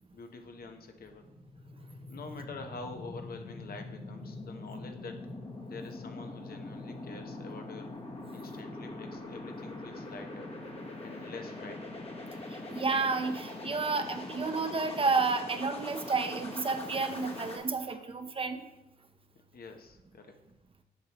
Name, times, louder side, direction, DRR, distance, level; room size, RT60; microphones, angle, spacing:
voice 1, 0.1-1.3 2.1-5.2 5.6-7.9 8.3-10.5 11.0-12.0 19.5-20.4, left 3 dB, 65° left, 5 dB, 0.8 m, -46 dB
sound 1, 1.1-17.6, left 2 dB, 35° left, 1.1 m, -43 dB
voice 2, 12.5-18.7, right 4 dB, 35° right, 8 dB, 0.6 m, -31 dB
7.6 x 5.5 x 2.9 m, 0.91 s
cardioid pair, 75°, 17 cm